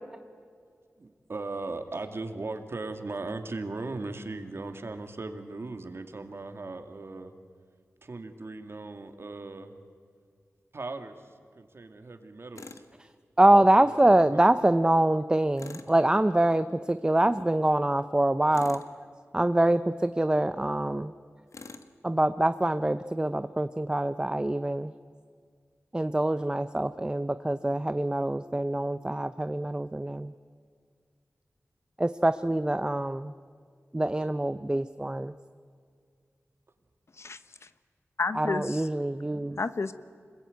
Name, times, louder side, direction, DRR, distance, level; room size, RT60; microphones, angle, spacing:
voice 1, 1.0-7.3 8.0-9.7 10.7-12.8 13.8-14.5, right 3 dB, 55° right, 7 dB, 2.2 m, -38 dB
Tools, 12.6-12.9 15.6-16.0 18.5-19.0 21.5-21.9, left 4 dB, 85° left, 1.5 m, -45 dB
voice 2, 13.4-18.8 19.3-21.1 22.0-24.9 25.9-30.3 32.0-33.3 33.9-35.3 38.3-39.6, right 1 dB, 15° right, 11 dB, 0.6 m, -25 dB
voice 3, 37.2-37.7 38.2-38.9 39.6-39.9, left 4 dB, 65° left, 12 dB, 1.1 m, -31 dB
26.5 x 21.5 x 9.4 m, 2.1 s
wide cardioid pair, 90°, 5 cm